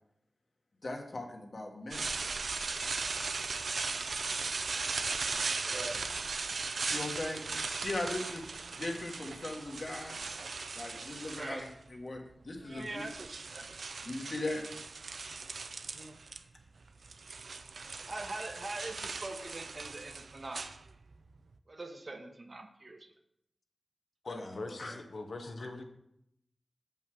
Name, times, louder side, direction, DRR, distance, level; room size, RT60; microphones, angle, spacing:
voice 1, 0.8-2.1 6.8-8.5 8.7-10.2 10.7-12.2 12.4-13.0 14.0-14.6 24.3-25.0 25.4-25.7, left 2 dB, 55° left, 1 dB, 1.5 m, -39 dB
sound 1, 1.9-11.8 12.6-16.4 16.7-21.3, right 4 dB, 85° right, 0.4 m, -38 dB
voice 2, 5.6-6.1 11.3-11.7 12.6-13.7 15.8-16.2 18.1-20.6 21.7-23.1, right 2 dB, 50° right, 5 dB, 1.0 m, -43 dB
voice 3, 24.2-25.8, left 2 dB, 75° left, 5 dB, 0.8 m, -41 dB
7.2 x 5.6 x 6.2 m, 0.78 s
wide cardioid pair, 70°, 0 cm